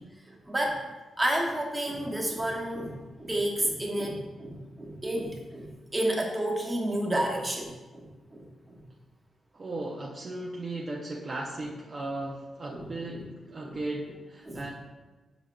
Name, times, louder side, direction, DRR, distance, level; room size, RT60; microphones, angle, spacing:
voice 1, 0.2-0.8 1.2-8.8 12.7-12.9 13.1-13.2 13.6-13.8 14.5-14.7, right 1 dB, 20° right, -1 dB, 1.1 m, -31 dB
voice 2, 9.5-14.7, right 2 dB, 45° right, -2 dB, 0.5 m, -36 dB
4.9 x 4.8 x 2.3 m, 1.2 s
supercardioid pair, 50°, 0 cm